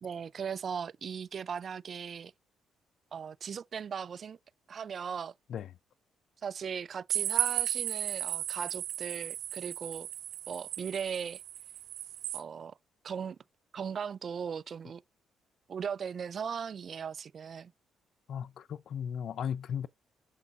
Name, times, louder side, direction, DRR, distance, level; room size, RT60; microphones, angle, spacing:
voice 1, 0.0-2.3 3.1-4.4 4.7-5.3 6.4-10.1 10.5-11.4 12.3-12.8 13.0-13.4 13.7-15.0 15.7-17.7, right 7 dB, 50° right, 0.3 m, -38 dB
sound 1, 7.1-12.4, right 12 dB, 85° right, 0.6 m, -35 dB
voice 2, 18.3-19.9, left 8 dB, 65° left, 0.4 m, -36 dB
7.2 x 6.6 x 2.4 m
cardioid pair, 90°, 0 cm